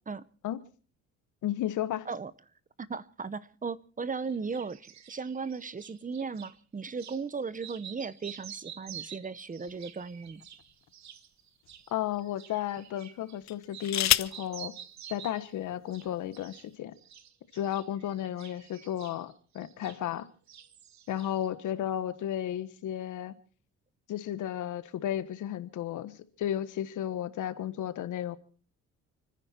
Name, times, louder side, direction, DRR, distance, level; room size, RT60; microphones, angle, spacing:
voice 1, 1.4-2.1 11.9-14.7 15.1-16.9 17.5-20.3 21.1-23.3 24.1-28.4, left 11 dB, 80° left, 1.4 m, -33 dB
voice 2, 2.9-10.4, right 5 dB, 25° right, 0.8 m, -36 dB
sound 1, 4.2-6.5 7.0-7.2 7.5-13.4 13.7-15.5 15.9-16.7 17.0-20.2 20.5-21.5, right 9 dB, 65° right, 1.5 m, -49 dB
sound 2, 9.7-10.9 11.6-11.8 13.4-14.5 15.6-15.7 16.0-16.4, left 12 dB, 65° left, 0.8 m, -30 dB
29.5 x 10.0 x 4.4 m
cardioid pair, 90°, 30 cm